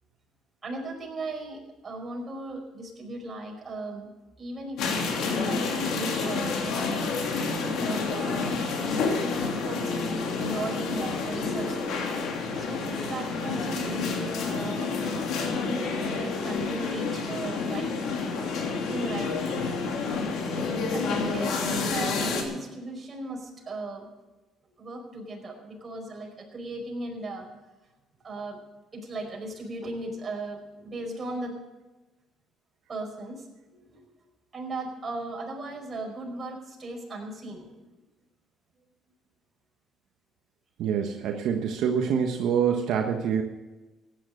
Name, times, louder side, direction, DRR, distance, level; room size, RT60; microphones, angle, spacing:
voice 1, 0.6-4.1 4.4-7.3 7.6-9.9 10.4-12.1 12.5-15.0 15.5-18.4 18.8-24.1 24.8-27.5 28.2-28.6 28.9-31.5 32.9-34.1 34.5-37.9, right 2 dB, 30° right, 1 dB, 4.9 m, -37 dB
sound 1, 4.8-22.4, left 4 dB, 75° left, 2.8 m, -29 dB
voice 2, 40.8-43.4, right 7 dB, 75° right, 3 dB, 1.2 m, -26 dB
15.5 x 10.0 x 6.6 m, 1.1 s
cardioid pair, 105°, 0 cm